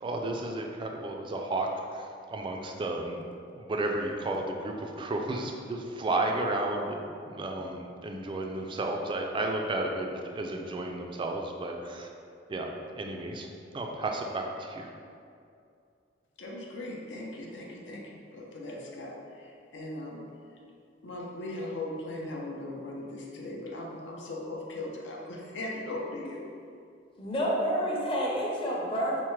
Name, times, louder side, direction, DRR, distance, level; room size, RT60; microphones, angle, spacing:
voice 1, 0.0-3.2 3.6-7.0 7.3-12.1 12.5-13.5 13.7-14.9, right 2 dB, 25° right, 2 dB, 0.3 m, -32 dB
voice 2, 16.4-20.3 21.0-26.4, left 1 dB, 80° left, -2 dB, 0.6 m, -39 dB
voice 3, 27.2-29.2, equal, 30° left, -4 dB, 0.7 m, -29 dB
5.5 x 2.1 x 3.1 m, 2.4 s
head